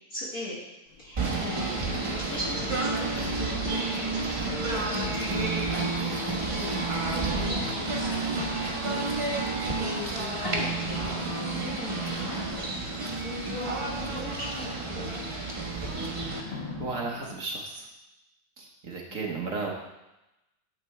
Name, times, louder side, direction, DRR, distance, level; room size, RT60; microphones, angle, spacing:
voice 1, 0.1-0.6 1.0-4.1 4.7-6.1 6.5-6.7 7.1-9.1 9.8-12.4 13.2-15.3 19.1-19.4, left 1 dB, 50° left, -6 dB, 2.0 m, -39 dB
sound 1, 0.9-17.3, left 4 dB, 80° left, 2.2 m, -50 dB
Singing / Bird, 1.1-16.4, right 3 dB, 25° right, 0.7 m, -30 dB
voice 2, 16.5-17.9 18.6-19.7, right 4 dB, 50° right, 0 dB, 1.1 m, -34 dB
9.0 x 8.0 x 3.3 m, 0.96 s
omnidirectional pair, 2.2 m